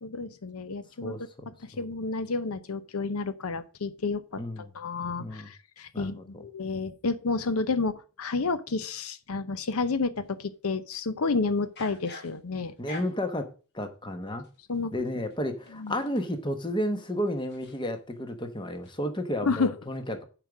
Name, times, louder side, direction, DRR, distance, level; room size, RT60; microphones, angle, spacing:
voice 1, 0.0-1.2 1.5-12.7 14.7-14.9 15.8-15.9 19.4-19.7, left 4 dB, 85° left, 0.7 m, -30 dB
voice 2, 1.0-1.8 4.4-4.7 5.2-5.5 5.9-6.4 12.8-14.4 14.9-20.2, equal, 20° left, 1.1 m, -32 dB
sound 1, 9.8-10.3 11.6-13.4 14.4-18.2 18.6-18.9, left 3 dB, 50° left, 2.0 m, -48 dB
7.3 x 5.0 x 7.1 m
head